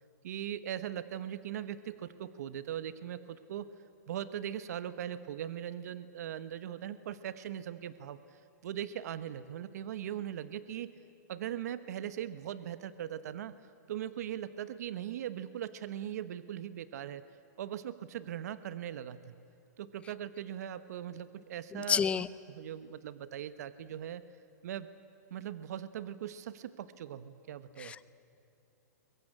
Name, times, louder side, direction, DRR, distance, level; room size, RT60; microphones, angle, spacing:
voice 1, 0.2-3.7 4.1-10.9 11.3-13.5 13.9-17.2 17.6-19.3 19.8-22.2 22.5-24.2 24.6-24.9 25.3-27.9, right 10 dB, 65° right, 14 dB, 1.1 m, -40 dB
voice 2, 21.7-22.3 27.8-28.1, left 6 dB, 10° left, 17 dB, 0.5 m, -30 dB
22.5 x 22.5 x 9.9 m, 2.9 s
hypercardioid pair, 150°, 9 cm